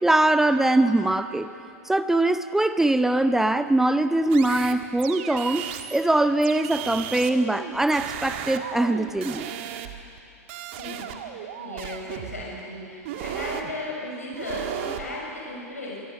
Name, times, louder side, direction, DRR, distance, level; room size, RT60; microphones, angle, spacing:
voice 1, 0.0-1.5 1.9-9.5, right 2 dB, 5° right, 11 dB, 0.7 m, -22 dB
sound 1, 4.3-6.0 6.4-10.2 10.5-12.4 13.0-13.7 14.3-15.1, right 10 dB, 50° right, 1.7 m, -35 dB
voice 2, 10.8-16.0, left 2 dB, 75° left, -3 dB, 6.2 m, -36 dB
25.0 x 22.0 x 7.0 m, 2.6 s
figure-of-eight pair, 95°, 8 cm